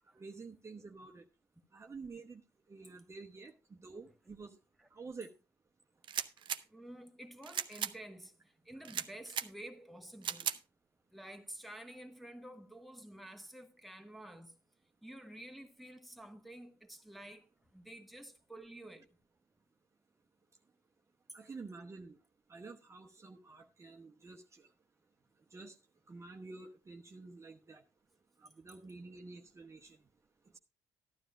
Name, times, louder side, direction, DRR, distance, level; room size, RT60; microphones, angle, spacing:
voice 1, 0.2-1.2 1.7-2.4 2.7-3.5 3.8-4.6 4.9-5.3 21.3-22.2 22.5-24.4 25.5-25.7 26.1-27.8 28.6-30.0, right 4 dB, 25° right, 1.0 m, -49 dB
sound 1, 6.0-6.6 7.4-7.9 8.8-9.5 10.2-10.6, right 9 dB, 45° right, 0.7 m, -37 dB
voice 2, 6.7-10.6 11.1-14.6 15.0-19.2 28.4-28.5, right 1 dB, ahead, 1.2 m, -51 dB
13.0 x 12.0 x 2.4 m
hypercardioid pair, 55°, 11 cm